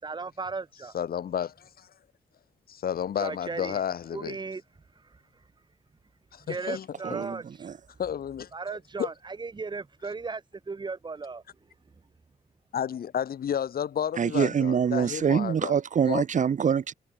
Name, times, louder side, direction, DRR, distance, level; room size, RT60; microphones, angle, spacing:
voice 1, 0.0-1.0 3.2-3.8 4.1-4.6 6.4-7.7 8.5-11.4, right 4 dB, 30° right, 6.3 m, -36 dB
voice 2, 0.9-1.9 2.7-4.4 6.3-6.9 8.0-9.1 12.7-15.7 16.1-16.2, left 9 dB, 75° left, 2.2 m, -31 dB
voice 3, 7.0-7.8 14.2-16.9, right 7 dB, 55° right, 1.6 m, -25 dB
wide cardioid pair, 175°, 15 cm